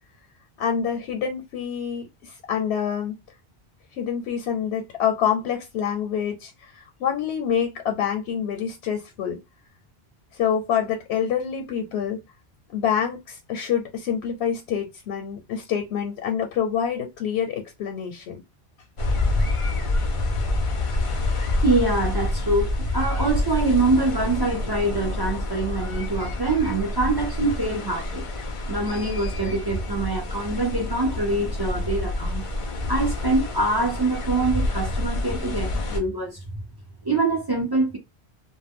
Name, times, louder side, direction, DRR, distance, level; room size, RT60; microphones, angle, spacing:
voice 1, 0.6-3.2 3.9-9.4 10.3-12.2 12.7-18.4, left 8 dB, 85° left, 0.8 m, -26 dB
sound 1, 19.0-36.0, left 2 dB, 50° left, 0.4 m, -27 dB
voice 2, 21.6-28.3 28.7-32.5 32.9-36.4 37.0-38.0, right 2 dB, 35° right, 0.4 m, -24 dB
2.1 x 2.1 x 3.5 m
omnidirectional pair, 1.1 m